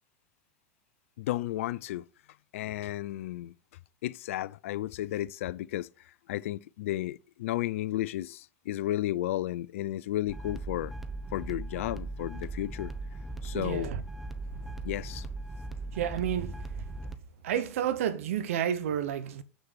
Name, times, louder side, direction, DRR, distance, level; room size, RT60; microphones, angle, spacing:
voice 1, 1.2-2.0 2.5-3.5 4.0-10.9 11.3-12.9 13.4-13.9 14.8-15.3, left 14 dB, 65° left, 0.5 m, -33 dB
sound 1, 10.3-17.2, right 2 dB, ahead, 1.0 m, -39 dB
voice 2, 13.5-14.0 15.9-16.6 17.4-19.4, right 9 dB, 70° right, 1.0 m, -30 dB
7.4 x 6.4 x 6.7 m
hypercardioid pair, 95°, 8 cm